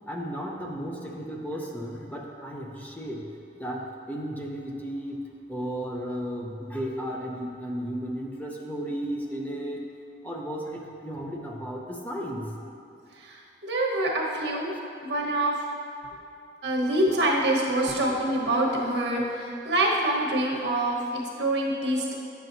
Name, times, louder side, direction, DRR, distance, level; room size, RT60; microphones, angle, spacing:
voice 1, 0.1-3.3 3.6-5.2 5.5-9.8 10.2-12.5 14.7-14.8, equal, 10° left, -1 dB, 0.6 m, -34 dB
voice 2, 13.2-14.7 15.0-15.6 16.6-22.1, right 1 dB, 70° right, -2 dB, 1.3 m, -26 dB
10.5 x 7.4 x 2.7 m, 2.6 s
head